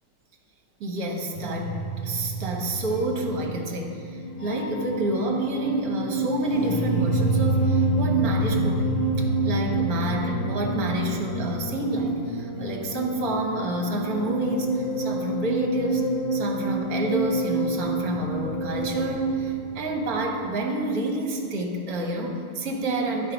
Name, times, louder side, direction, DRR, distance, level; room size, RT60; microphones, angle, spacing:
voice 1, 0.8-1.8 2.0-23.3, right 1 dB, 55° right, 1 dB, 1.5 m, -29 dB
sound 1, 1.3-20.2, right 2 dB, 45° left, 0.4 m, -28 dB
10.0 x 4.5 x 5.1 m, 2.3 s
omnidirectional pair, 2.0 m